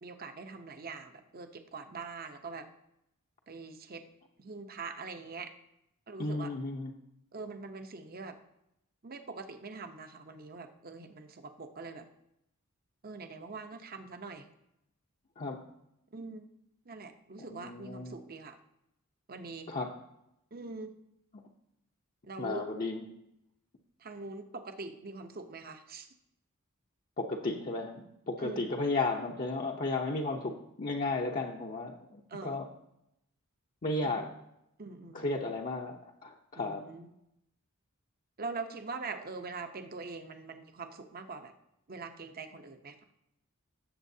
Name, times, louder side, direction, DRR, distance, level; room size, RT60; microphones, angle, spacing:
voice 1, 0.0-2.7 3.5-4.0 4.4-5.5 6.1-6.5 7.3-8.4 9.0-12.1 13.0-14.5 16.1-16.5 16.9-18.6 19.3-19.7 20.5-20.9 22.2-22.7 24.0-26.1 28.4-28.7 31.0-31.2 32.3-32.6 34.0-34.3 34.8-35.2 36.5-37.2 38.4-41.5 41.9-42.9, right 3 dB, 45° right, 7 dB, 0.8 m, -43 dB
voice 2, 6.2-6.9 15.4-15.6 17.4-18.2 19.7-19.9 22.4-23.0 27.2-32.7 33.8-34.3 35.1-36.8, left 3 dB, 40° left, -1 dB, 0.7 m, -34 dB
17.0 x 7.4 x 2.7 m, 0.82 s
head